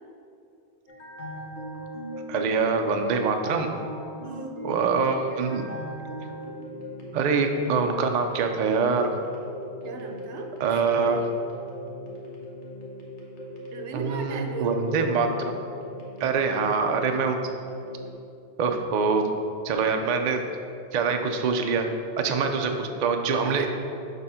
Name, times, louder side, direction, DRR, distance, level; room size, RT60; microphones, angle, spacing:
sound 1, 0.9-18.1, equal, 85° left, 1.4 m, -39 dB
voice 1, 2.3-3.8 4.6-5.6 7.1-9.1 10.6-11.2 13.9-15.5 16.2-17.4 18.6-19.3 19.6-20.4 20.9-21.9 22.2-23.7, right 5 dB, 55° right, 5 dB, 0.5 m, -24 dB
voice 2, 4.2-4.6 9.8-10.9 13.7-14.8 22.3-22.6 23.4-23.7, right 4 dB, 85° right, 4 dB, 0.9 m, -36 dB
6.5 x 3.5 x 5.6 m, 2.6 s
omnidirectional pair, 1.1 m